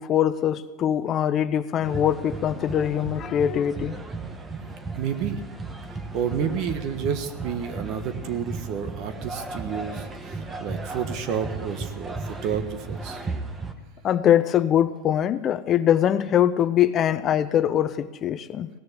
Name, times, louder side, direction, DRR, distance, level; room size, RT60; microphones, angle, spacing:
voice 1, 0.0-4.0 14.0-18.7, left 10 dB, 35° left, 0.6 m, -22 dB
sound 1, 1.8-13.7, right 3 dB, 20° right, 1.3 m, -35 dB
voice 2, 5.0-5.4 6.1-13.2, right 7 dB, 50° right, 1.4 m, -30 dB
17.0 x 6.6 x 9.8 m
supercardioid pair, 120°, 0 cm